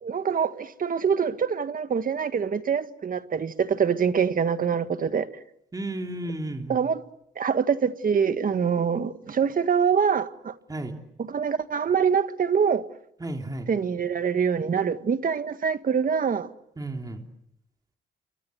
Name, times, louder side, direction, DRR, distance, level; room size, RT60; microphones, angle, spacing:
voice 1, 0.0-5.3 6.7-7.0 7.4-10.5 11.2-12.8 13.7-16.5, right 6 dB, 45° right, 1.6 m, -25 dB
voice 2, 5.7-6.8 10.7-11.0 13.2-13.7 16.8-17.2, right 1 dB, 20° right, 3.3 m, -33 dB
29.0 x 24.5 x 7.9 m
cardioid pair, 90°, 20 cm